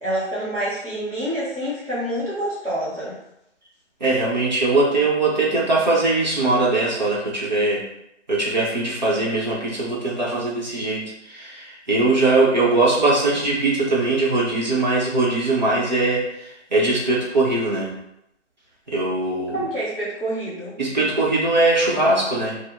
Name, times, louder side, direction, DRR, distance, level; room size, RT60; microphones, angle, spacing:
voice 1, 0.0-3.1 19.5-20.7, right 1 dB, ahead, -23 dB, 0.9 m, -27 dB
voice 2, 4.0-7.9 8.3-17.9 18.9-19.7 20.8-22.6, right 2 dB, 40° right, -5 dB, 0.9 m, -21 dB
4.8 x 2.1 x 3.5 m, 0.81 s
figure-of-eight pair, 165°, 36 cm